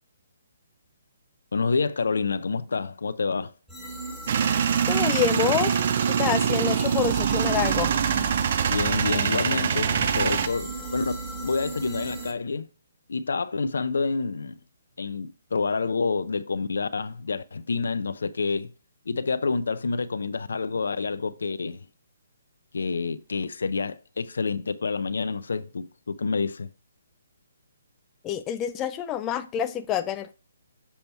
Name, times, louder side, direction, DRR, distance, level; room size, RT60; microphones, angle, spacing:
voice 1, 1.5-3.5 8.7-12.7 13.1-14.6 15.0-18.7 19.1-21.8 22.7-26.7, left 4 dB, 80° left, 0.5 m, -28 dB
sound 1, 3.7-12.3, right 4 dB, 5° right, 1.5 m, -35 dB
Male speech man speaking / Vehicle / Engine starting, 4.3-10.5, right 8 dB, 50° right, 0.6 m, -24 dB
voice 2, 4.9-5.8 6.1-7.9 28.2-30.3, left 9 dB, 20° left, 0.4 m, -27 dB
7.1 x 4.2 x 4.4 m
hypercardioid pair, 150°, 0 cm